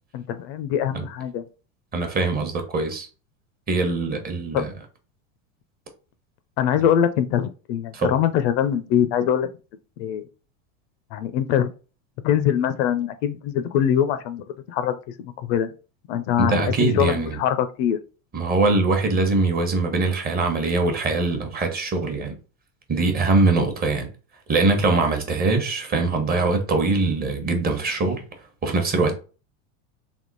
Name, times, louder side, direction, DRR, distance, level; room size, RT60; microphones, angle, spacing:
voice 1, 0.1-1.4 4.5-4.7 6.6-9.5 10.0-10.2 11.1-11.7 12.2-15.0 15.4-15.7 16.1-18.0, left 9 dB, 65° left, 0.6 m, -23 dB
voice 2, 1.9-3.1 3.7-4.7 7.9-8.2 16.4-17.4 18.3-22.4 22.9-24.1 24.5-28.2 28.6-29.1, right 3 dB, 25° right, 0.9 m, -22 dB
3.6 x 2.8 x 4.0 m
supercardioid pair, 135°, 38 cm